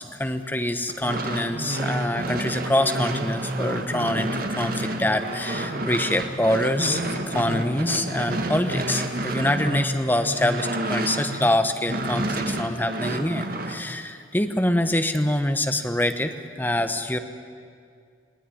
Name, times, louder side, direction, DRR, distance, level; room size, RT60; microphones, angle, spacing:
voice 1, 0.0-17.2, left 1 dB, 10° left, 8 dB, 1.0 m, -25 dB
sound 1, 0.9-11.6 11.9-13.8, right 1 dB, 50° right, 1.7 m, -29 dB
21.5 x 16.5 x 9.9 m, 2.2 s
head